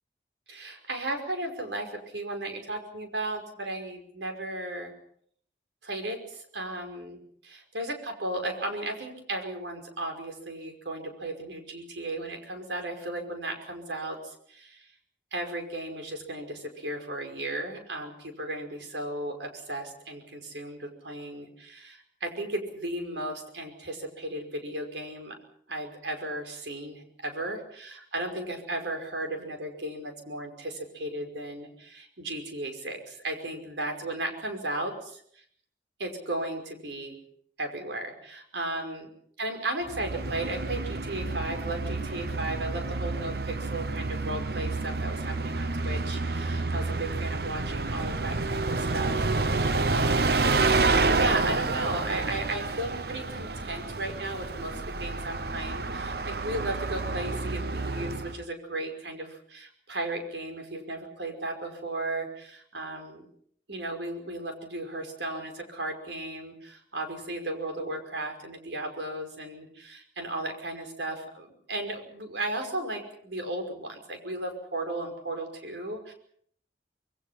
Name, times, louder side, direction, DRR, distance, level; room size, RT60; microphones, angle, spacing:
voice 1, 0.5-4.9 5.8-14.9 15.3-25.4 25.7-35.4 36.0-37.2 37.6-39.1 39.4-50.5 50.8-63.3 63.7-76.1, right 1 dB, 85° right, 4 dB, 5.4 m, -35 dB
Bus, 39.8-58.4, right 3 dB, 60° right, 1.0 m, -29 dB
26.5 x 21.5 x 5.8 m, 0.64 s
head